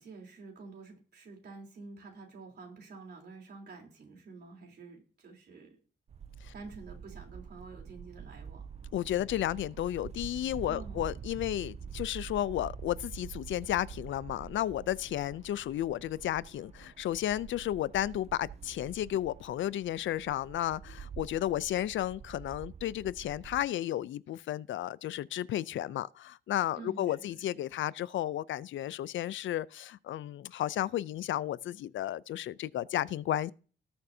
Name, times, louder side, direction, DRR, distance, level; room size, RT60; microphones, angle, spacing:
voice 1, 0.0-5.8 6.5-8.6 10.7-11.1 26.7-27.6, right 4 dB, 60° right, 3.6 m, -49 dB
sound 1, 6.1-23.7, right 7 dB, 35° right, 0.4 m, -46 dB
voice 2, 8.9-33.5, left 12 dB, 85° left, 0.5 m, -33 dB
19.0 x 6.7 x 2.7 m
wide cardioid pair, 140°, 19 cm